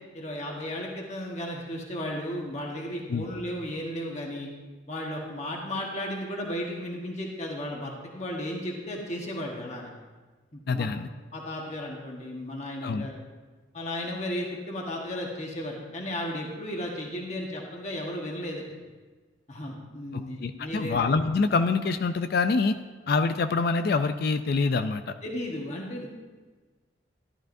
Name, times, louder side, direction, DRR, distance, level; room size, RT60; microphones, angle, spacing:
voice 1, 0.1-4.5 4.9-9.9 10.5-10.9 11.3-13.1 13.7-18.6 19.5-21.0 25.2-26.1, left 1 dB, 35° left, -1 dB, 1.4 m, -34 dB
voice 2, 10.7-11.1 12.8-13.1 20.1-22.8 23.1-25.1, left 4 dB, 55° left, 9 dB, 0.4 m, -25 dB
13.5 x 11.5 x 2.6 m, 1.4 s
head